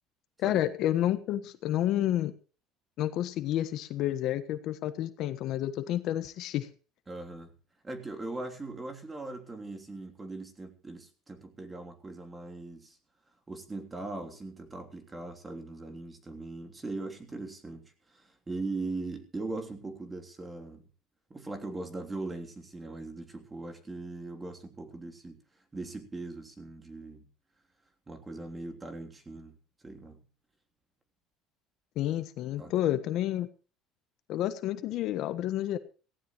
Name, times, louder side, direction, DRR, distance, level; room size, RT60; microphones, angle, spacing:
voice 1, 0.4-2.3 3.0-6.7 32.0-33.5 34.3-35.8, left 12 dB, 55° left, 12 dB, 1.3 m, -30 dB
voice 2, 7.1-7.5 7.8-13.0 13.5-20.8 21.3-25.4 25.7-27.2 28.1-29.6 29.8-30.2 32.6-32.7, right 2 dB, 15° right, 5 dB, 3.2 m, -40 dB
17.5 x 16.5 x 3.1 m, 0.37 s
cardioid pair, 145°, 0 cm